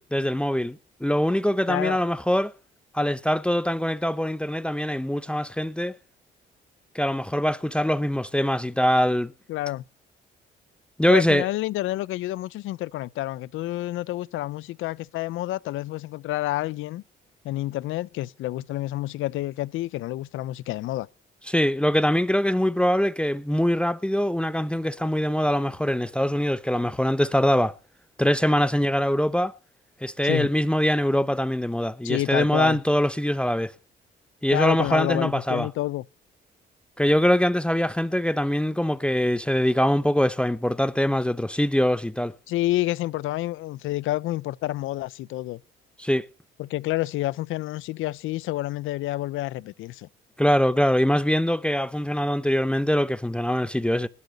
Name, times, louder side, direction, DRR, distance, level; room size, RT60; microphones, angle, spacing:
voice 1, 0.0-2.5 2.9-5.9 6.9-9.3 11.0-11.5 21.5-27.7 28.2-29.5 30.0-33.7 34.4-35.7 37.0-42.3 46.0-46.3 50.4-54.1, equal, 5° left, 0.8 m, -23 dB
voice 2, 1.7-2.0 9.5-9.8 11.1-17.0 17.4-21.1 30.2-30.5 32.0-32.8 34.5-36.0 42.5-45.6 46.6-50.1, left 16 dB, 85° left, 0.7 m, -29 dB
19.5 x 6.8 x 8.1 m
cardioid pair, 90°, 20 cm